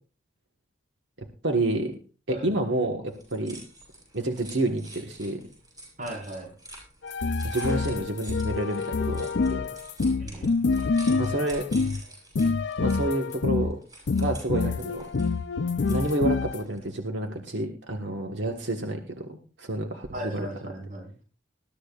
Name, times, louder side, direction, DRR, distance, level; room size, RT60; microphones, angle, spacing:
voice 1, 1.4-2.0 2.3-3.6 4.1-5.4 7.4-9.7 11.2-11.7 12.8-13.8 14.2-15.1 15.9-19.3 19.6-20.5, right 1 dB, 75° right, 3 dB, 1.5 m, -29 dB
sound 1, 3.1-17.0, right 1 dB, 20° right, 7.0 m, -47 dB
voice 2, 6.0-6.5 10.2-10.6 20.1-21.2, right 1 dB, 45° right, 1 dB, 4.4 m, -37 dB
sound 2, 7.0-12.0 12.4-13.7 14.1-16.6, left 4 dB, 70° left, 0.5 m, -26 dB
20.5 x 12.5 x 2.4 m, 0.35 s
head